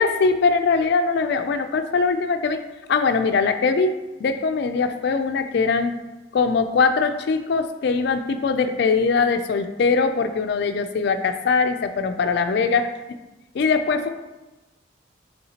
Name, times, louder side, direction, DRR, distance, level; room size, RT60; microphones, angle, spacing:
voice 1, 0.0-2.6 2.9-6.0 6.3-12.8 13.5-14.1, left 4 dB, 55° left, 8 dB, 0.3 m, -21 dB
5.6 x 3.3 x 2.8 m, 1.1 s
head